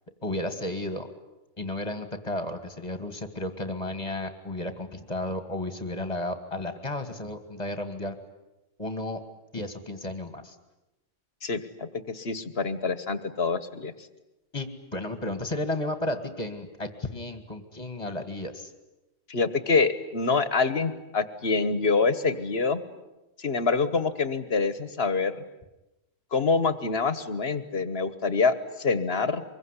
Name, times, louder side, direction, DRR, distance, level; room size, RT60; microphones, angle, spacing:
voice 1, 0.2-1.1 1.6-8.2 8.8-9.2 9.5-10.6 14.5-18.7, left 1 dB, 25° left, 9 dB, 1.8 m, -33 dB
voice 2, 11.4-13.9 19.3-22.8 23.4-25.3 26.3-29.4, left 4 dB, 55° left, 13 dB, 1.5 m, -26 dB
25.0 x 22.0 x 9.8 m, 0.97 s
omnidirectional pair, 1.3 m